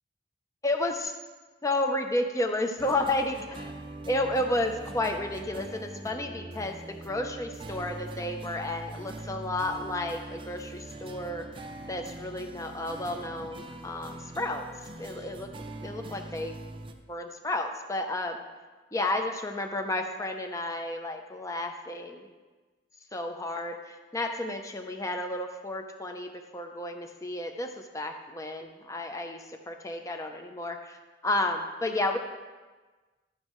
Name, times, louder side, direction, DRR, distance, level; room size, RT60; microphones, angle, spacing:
voice 1, 0.6-1.1 1.6-3.7 4.1-11.4 11.9-14.7 15.0-15.5 15.8-16.6 17.1-18.4 18.9-22.3 23.1-31.0 31.2-32.2, left 1 dB, 15° left, 4 dB, 0.6 m, -32 dB
sound 1, 2.8-16.9, right 2 dB, 25° right, 0.5 m, -42 dB
12.5 x 6.3 x 3.1 m, 1.3 s
head